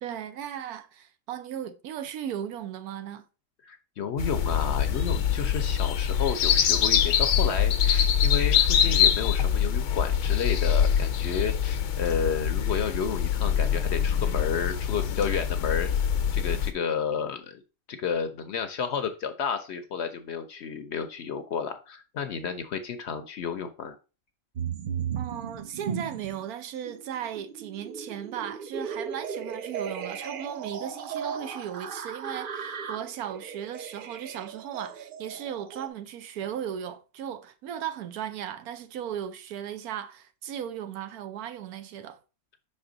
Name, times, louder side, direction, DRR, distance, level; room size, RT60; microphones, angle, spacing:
voice 1, 0.0-3.2 25.2-42.2, right 9 dB, 85° right, 1.2 m, -36 dB
voice 2, 3.6-15.9 16.3-17.6 17.9-24.0, left 6 dB, 60° left, 0.8 m, -31 dB
sound 1, 4.2-16.7, left 8 dB, 85° left, 1.2 m, -24 dB
sound 2, 24.6-26.5 26.9-35.9, right 7 dB, 65° right, 0.5 m, -36 dB
5.6 x 4.3 x 3.8 m
omnidirectional pair, 1.5 m